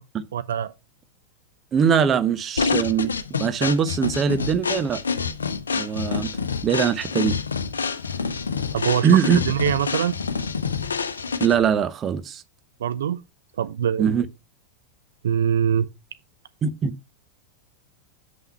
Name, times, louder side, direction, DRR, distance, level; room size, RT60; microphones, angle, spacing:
voice 1, 0.3-0.7 8.7-10.1 12.8-13.2 13.6-14.1 15.2-15.9, right 9 dB, 60° right, 0.4 m, -23 dB
voice 2, 1.7-5.0 5.7-6.3 6.6-7.4 9.0-9.4 11.4-12.4 14.0-14.3 16.6-16.9, right 7 dB, 25° right, 0.7 m, -21 dB
sound 1, 2.6-11.7, left 5 dB, 70° left, 0.6 m, -27 dB
7.5 x 5.6 x 4.3 m
figure-of-eight pair, 90°, 0 cm